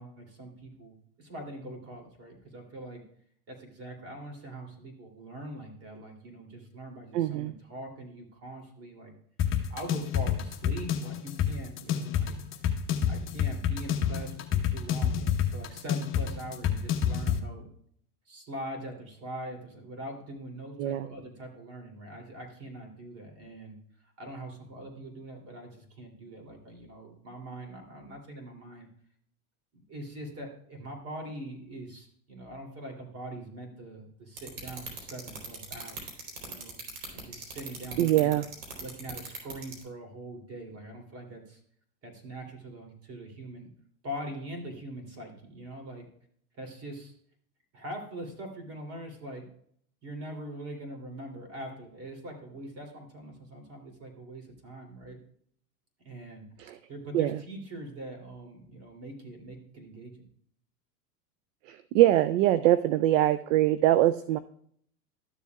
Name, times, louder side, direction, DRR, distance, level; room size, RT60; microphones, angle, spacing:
voice 1, 0.0-3.0 3.5-9.1 9.7-12.4 13.1-17.7 18.3-23.8 24.2-28.9 29.7-36.0 36.4-36.7 37.1-38.4 38.8-41.6 42.0-43.7 44.0-46.0 46.5-47.1 47.7-49.5 50.0-55.2 56.0-56.4 56.9-60.3, right 1 dB, 30° right, 3 dB, 2.9 m, -42 dB
voice 2, 7.1-7.5 20.8-21.1 38.0-38.5 56.6-56.8 57.1-57.4 61.7-64.4, right 14 dB, 55° right, 14 dB, 0.5 m, -23 dB
sound 1, 9.4-17.4, left 9 dB, 25° left, 1.0 m, -28 dB
sound 2, 34.4-39.8, right 5 dB, 80° right, 3.8 m, -38 dB
13.0 x 7.2 x 2.3 m, 0.64 s
hypercardioid pair, 120°, 46 cm